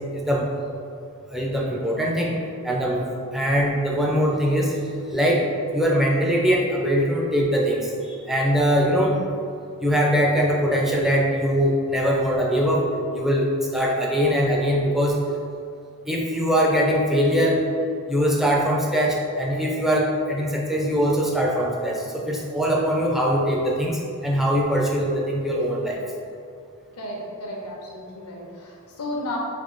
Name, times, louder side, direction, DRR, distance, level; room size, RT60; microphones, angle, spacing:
voice 1, 0.1-0.5 1.3-3.0 3.3-4.8 5.1-9.2 9.8-15.2 16.1-17.7 18.1-26.0, equal, ahead, -3 dB, 0.4 m, -22 dB
voice 2, 26.9-29.4, left 1 dB, 90° left, -2 dB, 0.8 m, -33 dB
3.5 x 2.8 x 3.8 m, 2.4 s
head